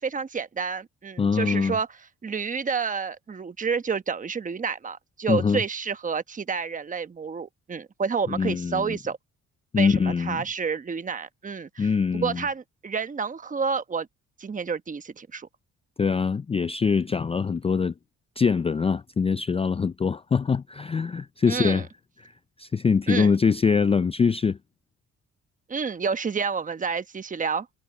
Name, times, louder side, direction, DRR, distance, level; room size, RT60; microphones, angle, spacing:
voice 1, 0.0-1.9 2.2-9.2 9.7-14.1 14.4-15.5 21.5-21.8 23.1-23.3 25.7-27.7, right 5 dB, 25° right, 1.0 m, -29 dB
voice 2, 1.2-1.8 5.3-5.6 8.3-9.0 9.7-10.4 11.8-12.4 16.0-17.9 18.4-21.9 22.2-24.6, left 5 dB, 20° left, 0.4 m, -23 dB
cardioid pair, 90°, 30 cm